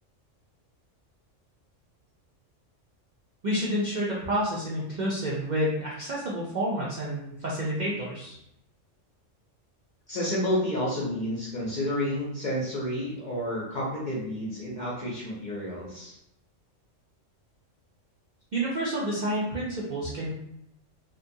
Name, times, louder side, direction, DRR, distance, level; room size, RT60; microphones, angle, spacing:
voice 1, 3.4-8.4 18.5-20.3, equal, 60° right, -6 dB, 0.4 m, -29 dB
voice 2, 10.1-16.2, left 1 dB, 55° left, -5 dB, 0.5 m, -30 dB
2.5 x 2.1 x 2.6 m, 0.77 s
omnidirectional pair, 1.3 m